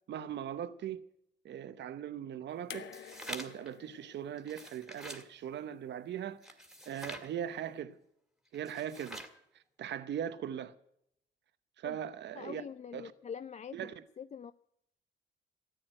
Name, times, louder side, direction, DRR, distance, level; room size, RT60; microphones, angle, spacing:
voice 1, 0.1-1.0 1.4-2.9 3.3-6.5 6.9-8.0 8.5-9.2 9.5-10.7 11.8-12.6 12.9-13.1 13.7-13.9, right 9 dB, 60° right, 0.8 m, -40 dB
sound 1, 2.7-5.9 7.1-7.2, left 8 dB, 65° left, 1.1 m, -51 dB
sound 2, 2.7-3.7 4.4-5.3 6.4-7.3 8.5-9.4, equal, 5° right, 2.2 m, -46 dB
voice 2, 12.3-13.8 14.2-14.5, left 7 dB, 35° left, 0.5 m, -44 dB
13.5 x 9.5 x 8.9 m
cardioid pair, 90°, 20 cm